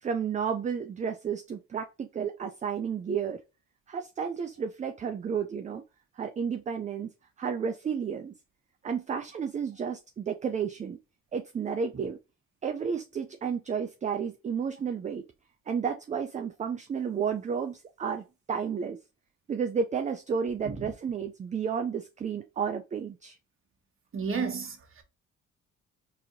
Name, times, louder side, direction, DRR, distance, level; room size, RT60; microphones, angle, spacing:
voice 1, 0.0-3.4 3.9-5.8 6.2-7.1 7.4-8.3 8.8-11.0 11.3-12.2 12.6-15.2 15.7-19.0 19.5-23.4, right 6 dB, 25° right, 0.3 m, -32 dB
voice 2, 24.1-25.0, right 5 dB, 45° right, 1.2 m, -33 dB
4.1 x 2.8 x 2.6 m
cardioid pair, 90°, 30 cm